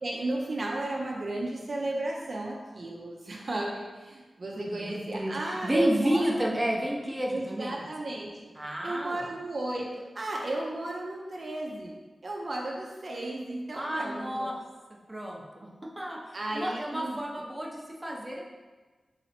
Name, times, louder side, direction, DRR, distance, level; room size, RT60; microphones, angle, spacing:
voice 1, 0.0-6.4 7.3-8.5 8.8-12.0 12.2-14.5 16.3-17.2, right 1 dB, 55° right, -2 dB, 0.6 m, -34 dB
voice 2, 4.7-5.3 5.6-7.8 8.6-9.3 13.7-14.6 15.1-18.4, equal, 15° right, -3 dB, 0.8 m, -31 dB
4.1 x 2.9 x 4.2 m, 1.3 s
cardioid pair, 60°, 0 cm